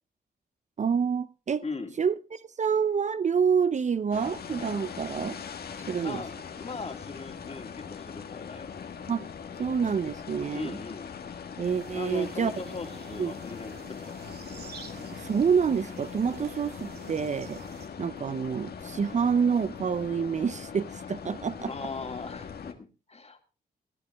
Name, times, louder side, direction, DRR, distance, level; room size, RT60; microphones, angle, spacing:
voice 1, 0.8-1.6 2.0-5.4 5.9-6.2 9.1-9.3 9.6-10.8 11.6-12.5 13.2-13.3 15.2-17.6 18.0-21.7, right 6 dB, 45° right, 0.6 m, -27 dB
voice 2, 1.6-1.9 6.0-8.7 10.5-11.1 11.9-14.2 21.7-23.4, left 4 dB, 40° left, 2.6 m, -39 dB
sound 1, 4.1-22.7, left 6 dB, 65° left, 1.6 m, -41 dB
sound 2, 11.6-17.9, right 5 dB, 70° right, 2.4 m, -49 dB
20.0 x 10.0 x 3.5 m
cardioid pair, 75°, 17 cm